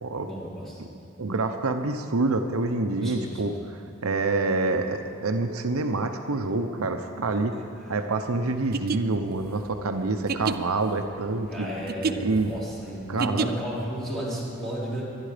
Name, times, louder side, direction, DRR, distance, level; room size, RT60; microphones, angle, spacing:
voice 1, 0.2-0.8 3.0-3.5 7.5-7.6 11.5-15.0, equal, ahead, -8 dB, 4.5 m, -33 dB
voice 2, 1.2-7.5 7.9-11.7 12.2-12.5 13.1-13.5, right 3 dB, 80° right, 6 dB, 0.8 m, -27 dB
sound 1, 8.6-13.8, right 5 dB, 45° right, 0.5 m, -31 dB
23.0 x 10.0 x 5.1 m, 2.5 s
head